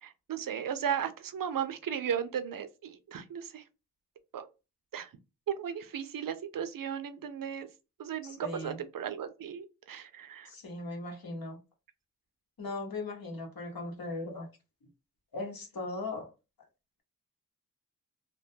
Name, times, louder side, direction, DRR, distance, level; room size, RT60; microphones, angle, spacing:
voice 1, 0.0-3.6 4.3-4.5 4.9-5.1 5.5-7.7 8.0-10.5, right 8 dB, 70° right, 0.5 m, -35 dB
voice 2, 8.2-8.8 10.5-11.6 12.6-14.5 15.3-16.3, left 2 dB, 80° left, 0.9 m, -38 dB
2.2 x 2.2 x 2.6 m
wide cardioid pair, 70°, 35 cm